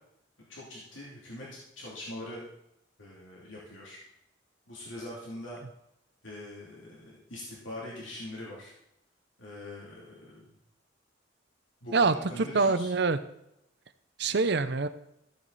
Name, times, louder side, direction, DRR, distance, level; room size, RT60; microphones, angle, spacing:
voice 1, 0.5-2.4 3.0-4.0 4.7-5.6 6.2-8.7 9.4-10.4 11.8-12.9, left 1 dB, 85° left, -5 dB, 2.8 m, -43 dB
voice 2, 11.9-13.2 14.2-14.9, right 4 dB, 60° right, 12 dB, 0.7 m, -25 dB
14.0 x 7.8 x 4.1 m, 0.81 s
head